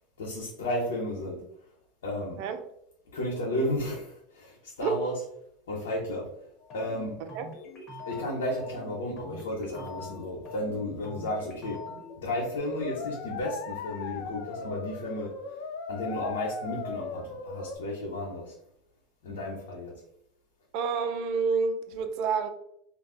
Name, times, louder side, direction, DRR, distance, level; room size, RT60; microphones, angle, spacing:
voice 1, 0.2-1.4 2.0-2.4 3.1-5.1 5.7-6.3 6.7-7.2 8.0-11.8 12.2-15.6 15.9-18.6 19.2-20.0, left 1 dB, 85° left, 0.8 m, -33 dB
sound 1, 6.6-12.6, left 2 dB, 45° left, 1.0 m, -44 dB
sound 2, 12.6-17.8, left 5 dB, 65° left, 0.4 m, -38 dB
voice 2, 20.7-22.5, right 5 dB, 65° right, 0.4 m, -28 dB
2.4 x 2.2 x 3.7 m
supercardioid pair, 105°, 0 cm